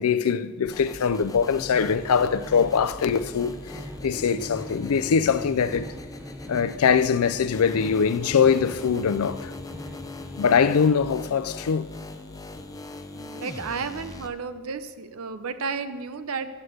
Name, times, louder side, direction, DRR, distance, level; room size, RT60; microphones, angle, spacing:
voice 1, 0.0-5.9 6.5-9.5 10.4-11.9, left 6 dB, 90° left, 0.4 m, -22 dB
sound 1, 0.7-14.3, left 2 dB, 15° left, 0.5 m, -40 dB
sound 2, 1.2-10.8, equal, 10° right, 1.0 m, -43 dB
voice 2, 13.1-16.5, right 5 dB, 80° right, 0.7 m, -33 dB
7.8 x 6.6 x 7.9 m
head